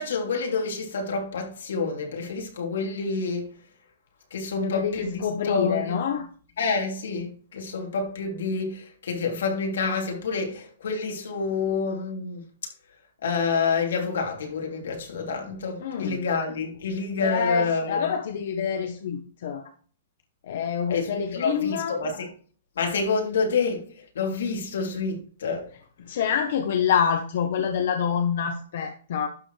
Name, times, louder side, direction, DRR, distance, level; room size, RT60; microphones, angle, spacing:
voice 1, 0.0-3.5 4.3-6.2 6.6-12.4 13.2-18.1 20.9-22.3 22.8-25.7, left 4 dB, 80° left, 3.2 m, -28 dB
voice 2, 4.6-6.2 15.8-16.2 17.2-19.6 20.4-22.0 26.0-29.3, left 7 dB, 50° left, 1.1 m, -26 dB
12.0 x 7.0 x 3.4 m
hypercardioid pair, 180°, 0 cm